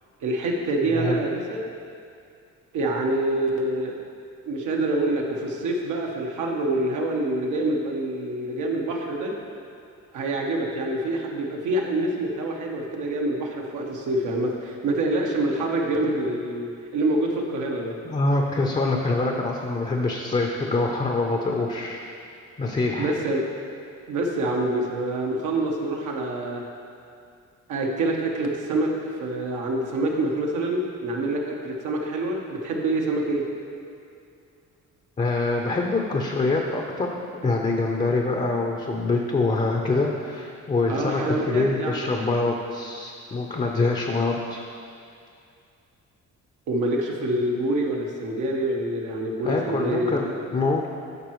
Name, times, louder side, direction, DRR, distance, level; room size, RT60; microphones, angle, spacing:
voice 1, 0.2-1.7 2.7-4.0 4.4-9.4 10.1-17.9 23.0-23.4 24.1-26.6 27.7-33.4 40.9-42.1 46.7-50.4, right 1 dB, 80° right, 0 dB, 1.1 m, -26 dB
voice 2, 0.9-1.2 18.0-22.0 22.6-23.1 35.2-44.6 49.4-50.9, left 3 dB, 25° left, 1 dB, 0.6 m, -25 dB
12.0 x 4.7 x 3.1 m, 2.4 s
cardioid pair, 90°, 30 cm